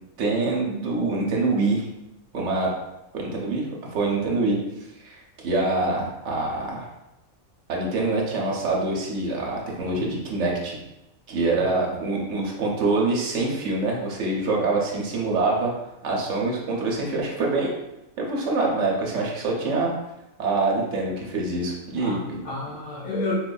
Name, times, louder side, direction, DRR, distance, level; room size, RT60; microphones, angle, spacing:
voice 1, 0.2-1.8 2.3-2.7 3.1-4.6 5.0-6.9 7.7-10.8 11.3-15.7 16.0-17.7 18.2-19.9 20.4-22.4, right 3 dB, 65° right, -2 dB, 1.0 m, -25 dB
voice 2, 11.6-11.9 22.0-23.3, left 2 dB, 75° left, -5 dB, 1.4 m, -32 dB
4.4 x 2.5 x 2.2 m, 0.94 s
omnidirectional pair, 1.5 m